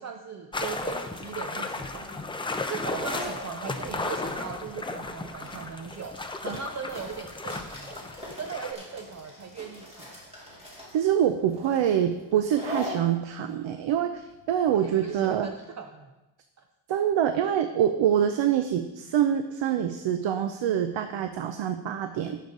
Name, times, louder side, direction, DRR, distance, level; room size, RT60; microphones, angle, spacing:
voice 1, 0.0-2.2 2.7-8.0 8.4-10.2 14.8-16.1, right 6 dB, 35° right, 5 dB, 0.6 m, -39 dB
sound 1, 0.5-8.7, left 3 dB, 10° left, 0.6 m, -35 dB
sound 2, 2.0-15.4, equal, 15° right, 3.2 m, -42 dB
voice 2, 10.9-15.5 16.9-22.4, right 9 dB, 75° right, 8 dB, 0.7 m, -25 dB
16.0 x 6.7 x 3.9 m, 1.0 s
wide cardioid pair, 160°, 45 cm